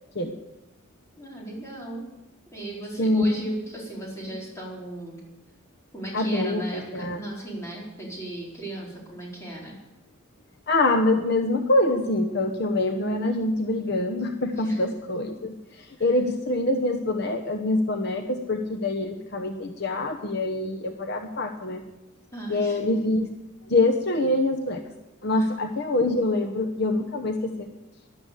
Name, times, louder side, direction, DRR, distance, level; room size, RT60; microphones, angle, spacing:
voice 1, 1.2-2.1 2.5-5.2 5.9-9.7 14.6-14.9 16.0-16.1 22.3-23.0 25.4-25.5, right 1 dB, 15° left, -4 dB, 4.4 m, -36 dB
voice 2, 3.0-3.5 6.1-7.2 10.7-21.8 22.5-23.3 23.7-24.9 25.2-27.7, left 2 dB, 50° left, 4 dB, 1.0 m, -25 dB
13.0 x 11.5 x 8.3 m, 0.99 s
head